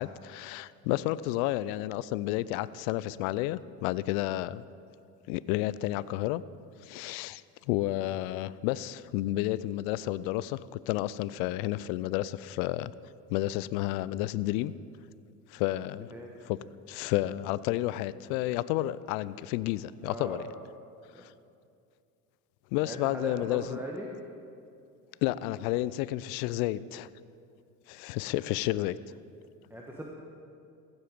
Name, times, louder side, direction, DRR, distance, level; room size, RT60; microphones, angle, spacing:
voice 1, 0.0-4.6 5.3-6.4 6.8-7.4 7.7-12.9 13.3-14.7 15.5-16.1 16.5-16.6 16.9-20.4 21.2-21.3 22.7-23.8 25.2-27.1 27.9-29.0, left 16 dB, 65° left, 18 dB, 0.5 m, -31 dB
voice 2, 20.0-20.5 21.1-21.3 22.8-24.1 29.7-30.1, equal, 5° right, -1 dB, 1.3 m, -39 dB
15.5 x 8.1 x 5.2 m, 2.5 s
hypercardioid pair, 75°, 48 cm